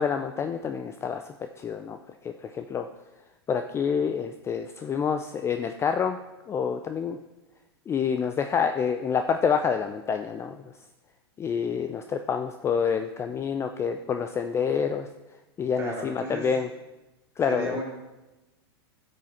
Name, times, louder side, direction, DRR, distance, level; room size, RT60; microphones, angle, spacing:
voice 1, 0.0-2.0 2.2-2.9 3.5-6.2 6.5-7.2 7.9-10.6 11.4-15.1 15.6-16.7 17.4-17.8, left 6 dB, 20° left, 7 dB, 0.4 m, -27 dB
voice 2, 15.7-16.5 17.4-17.8, right 1 dB, 20° right, -3 dB, 3.3 m, -34 dB
11.5 x 6.4 x 4.2 m, 1.0 s
hypercardioid pair, 110°, 13 cm